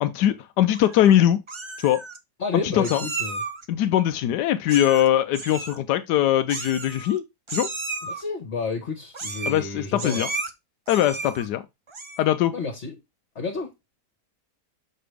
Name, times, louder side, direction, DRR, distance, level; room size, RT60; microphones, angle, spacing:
voice 1, 0.0-1.4 1.8-2.0 2.5-3.0 3.7-7.7 9.5-10.3 10.9-11.6 12.2-12.5, left 11 dB, 85° left, 1.2 m, -21 dB
Meow, 0.7-1.1 1.5-2.2 2.8-3.6 4.7-5.1 5.3-5.8 6.5-7.2 7.5-8.2 9.1-9.6 10.0-10.5 10.9-11.5 11.9-12.3, right 3 dB, 40° right, 0.4 m, -33 dB
voice 2, 2.4-3.4 8.0-10.3 12.5-12.9 13.3-13.7, left 4 dB, 45° left, 1.6 m, -30 dB
6.6 x 5.0 x 3.3 m
omnidirectional pair, 1.7 m